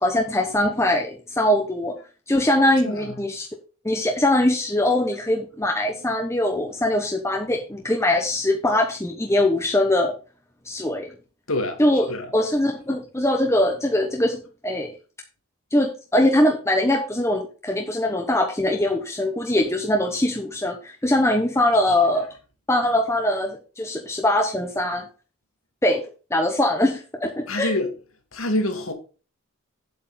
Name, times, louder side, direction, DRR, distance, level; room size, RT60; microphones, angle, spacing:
voice 1, 0.0-1.9 2.3-3.5 3.8-10.1 10.6-11.1 11.8-12.1 12.3-14.9 15.7-22.3 22.7-25.1 25.8-26.0 26.3-27.7, left 1 dB, 10° left, 1.0 m, -22 dB
voice 2, 2.8-3.2 11.5-11.8 12.1-12.3 27.5-27.9 28.3-28.9, left 1 dB, 70° left, 2.0 m, -26 dB
8.5 x 7.8 x 4.0 m
head